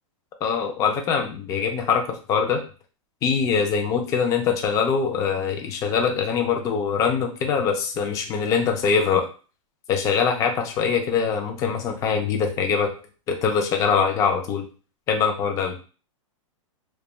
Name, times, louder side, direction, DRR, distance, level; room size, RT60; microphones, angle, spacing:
voice 1, 0.4-2.6 3.2-9.3 9.9-12.9 13.3-14.6 15.1-15.7, left 6 dB, 20° left, 4 dB, 0.3 m, -23 dB
2.3 x 2.2 x 2.9 m, 0.36 s
hypercardioid pair, 135°, 17 cm